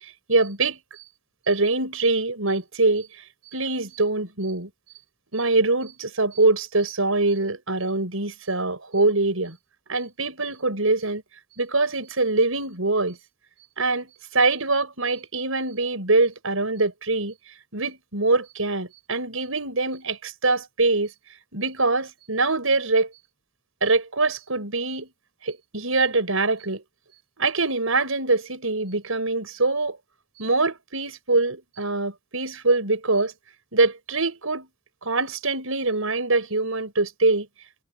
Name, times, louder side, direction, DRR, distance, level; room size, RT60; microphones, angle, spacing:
voice 1, 0.3-0.8 1.5-3.1 3.5-4.7 5.3-9.6 9.9-11.2 11.6-13.2 13.8-17.3 17.7-21.1 21.5-23.1 23.8-25.1 25.4-26.8 27.4-30.0 30.4-33.3 33.7-34.7 35.0-37.5, right 3 dB, 80° right, 6.0 m, -23 dB
head